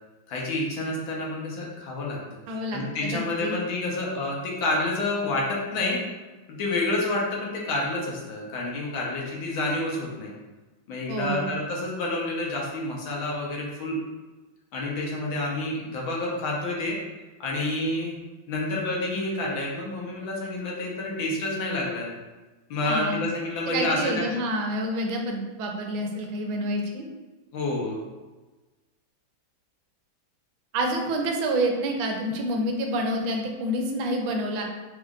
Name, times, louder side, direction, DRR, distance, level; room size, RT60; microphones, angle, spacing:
voice 1, 0.3-2.2 2.5-6.0 6.5-10.3 10.9-14.0 14.7-17.0 17.4-18.2 18.5-22.1 22.7-24.2 27.5-28.0, left 2 dB, 80° left, -3 dB, 1.7 m, -29 dB
voice 2, 2.5-3.6 11.1-11.6 22.8-23.2 23.7-27.0 30.7-34.6, right 1 dB, 85° right, 2 dB, 1.5 m, -28 dB
5.1 x 4.2 x 2.5 m, 1.2 s
omnidirectional pair, 2.1 m